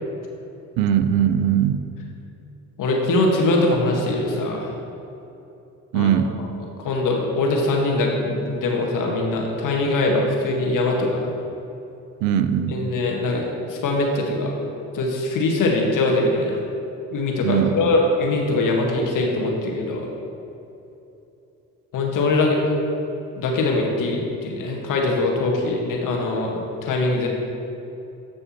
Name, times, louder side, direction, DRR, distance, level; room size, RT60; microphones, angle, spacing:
voice 1, 0.8-1.9 5.9-6.4 12.2-12.8 17.4-18.0, right 9 dB, 65° right, 10 dB, 0.6 m, -20 dB
voice 2, 2.8-4.7 5.9-6.1 6.8-11.3 12.7-13.4 13.7-14.5 14.9-16.6 17.1-20.1 21.9-22.6 23.4-27.3, left 2 dB, 55° left, 0 dB, 1.6 m, -22 dB
14.0 x 5.3 x 2.9 m, 2.9 s
hypercardioid pair, 55°, 39 cm